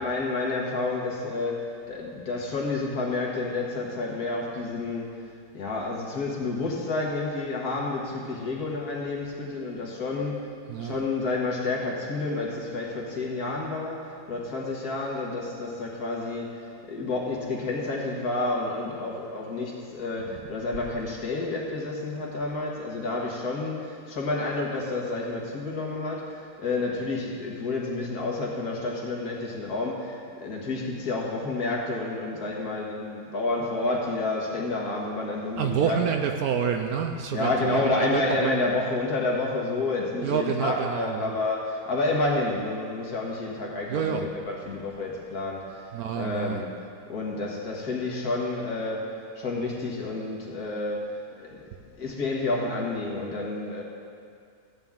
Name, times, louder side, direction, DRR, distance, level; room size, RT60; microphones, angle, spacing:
voice 1, 0.0-5.2 5.5-10.4 10.8-36.1 37.3-46.7 47.1-51.1 51.4-51.6 52.0-53.8, left 3 dB, 60° left, -2 dB, 1.9 m, -30 dB
voice 2, 10.7-11.0 35.6-38.6 40.2-41.4 43.9-44.3 45.9-46.6, right 7 dB, 70° right, 5 dB, 0.9 m, -28 dB
14.0 x 8.7 x 3.6 m, 2.3 s
omnidirectional pair, 1.9 m